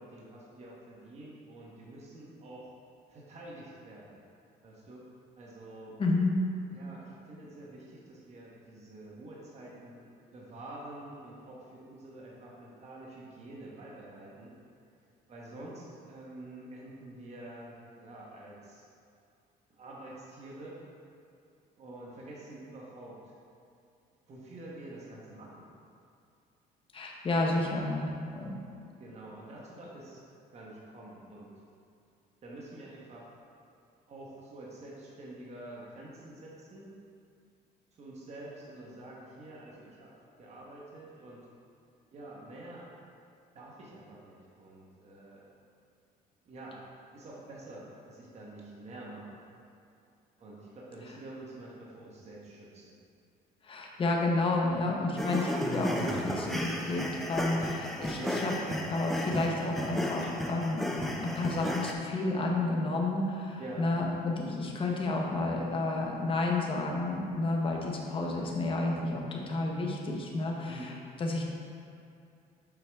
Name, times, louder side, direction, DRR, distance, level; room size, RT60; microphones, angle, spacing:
voice 1, 0.0-2.7 3.1-4.2 4.6-5.0 5.4-6.0 6.7-10.1 10.3-14.5 15.3-18.8 19.7-20.8 21.8-23.3 24.3-25.7 27.4-27.6 29.0-30.2 30.5-31.5 32.4-33.3 34.1-36.9 38.0-40.1 40.4-41.5 42.1-42.9 43.5-45.5 46.4-49.4 50.4-52.9 58.1-58.5 63.6-63.9 70.6-71.0, right 1 dB, 40° right, -4 dB, 1.3 m, -47 dB
voice 2, 6.0-6.4 26.9-28.6 53.6-58.5 58.9-60.9 61.2-70.9 71.2-71.4, left 2 dB, 30° left, -1 dB, 1.0 m, -31 dB
sound 1, 55.2-61.9, equal, ahead, 0.6 m, -34 dB
7.1 x 4.9 x 3.5 m, 2.6 s
cardioid pair, 110°, 17 cm